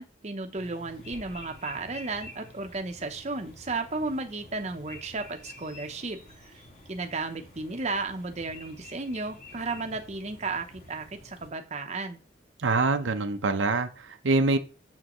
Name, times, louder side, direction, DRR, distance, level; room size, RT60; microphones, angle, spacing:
voice 1, 0.0-6.6 6.9-12.2, right 3 dB, 35° right, 0.8 m, -34 dB
sound 1, 0.6-11.5, left 1 dB, 50° left, 3.9 m, -49 dB
voice 2, 12.6-14.6, right 3 dB, 80° right, 0.8 m, -25 dB
7.5 x 7.5 x 3.1 m
head